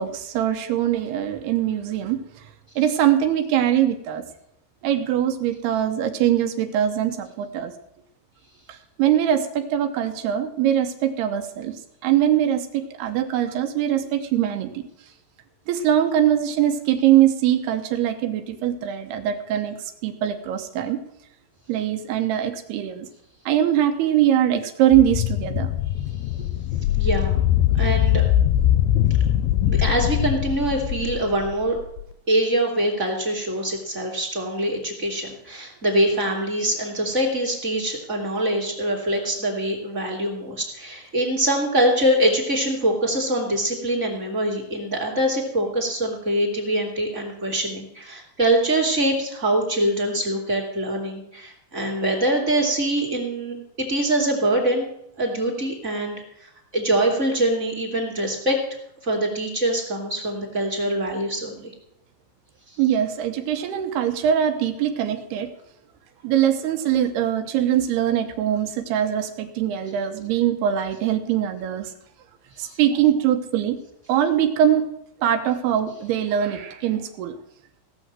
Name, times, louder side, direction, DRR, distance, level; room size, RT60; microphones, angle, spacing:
voice 1, 0.0-2.2 2.8-4.2 4.8-7.7 8.7-11.8 12.0-14.8 15.7-19.8 20.0-21.0 21.7-23.1 23.5-25.7 62.8-65.5 66.2-71.9 72.6-73.8 74.1-74.8 75.2-77.4, right 10 dB, 85° right, 7 dB, 3.0 m, -22 dB
sound 1, 24.9-32.0, left 12 dB, 80° left, 2.4 m, -22 dB
voice 2, 27.0-27.4 27.8-28.3 29.7-31.8 32.3-54.9 55.2-58.6 59.0-61.7, right 1 dB, 25° right, 1 dB, 2.1 m, -24 dB
17.0 x 6.5 x 7.4 m, 0.76 s
omnidirectional pair, 4.5 m